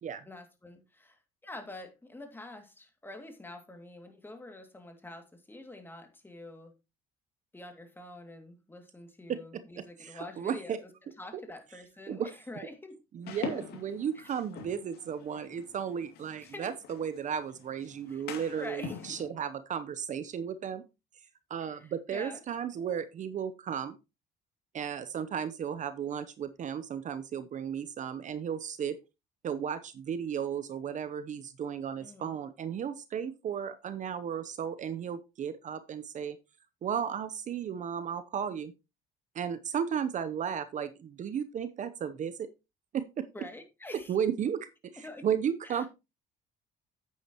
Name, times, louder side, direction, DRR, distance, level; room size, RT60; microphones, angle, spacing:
voice 1, 0.2-6.7 7.5-10.9 11.2-13.0 14.1-14.3 16.4-16.7 18.1-18.2 18.6-19.2 21.6-22.4 31.9-32.4 43.3-44.2 45.0-45.3 45.6-45.9, left 2 dB, 10° left, 5 dB, 2.2 m, -46 dB
voice 2, 10.0-10.8 12.1-12.3 13.1-20.8 21.5-24.0 24.7-29.0 29.4-36.4 36.8-38.7 39.3-42.5 42.9-43.3 44.1-45.9, right 8 dB, 45° right, 12 dB, 0.7 m, -34 dB
sound 1, 13.2-19.2, left 6 dB, 70° left, 2.4 m, -44 dB
9.1 x 8.6 x 2.9 m, 0.26 s
cardioid pair, 110°, 17 cm